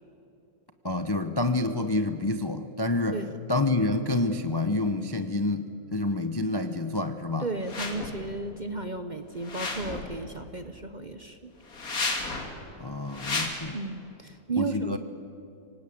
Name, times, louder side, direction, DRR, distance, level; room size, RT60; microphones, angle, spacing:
voice 1, 0.8-3.2 3.5-7.5 12.8-13.8 14.6-15.0, left 2 dB, 25° left, 8 dB, 0.5 m, -28 dB
voice 2, 7.4-11.5 13.7-15.0, right 3 dB, 35° right, 9 dB, 0.8 m, -34 dB
sound 1, 7.6-8.2 9.4-10.2 11.7-12.5 13.1-13.5, left 3 dB, 60° left, 2.7 m, -32 dB
25.5 x 18.5 x 8.5 m, 2.8 s
omnidirectional pair, 1.7 m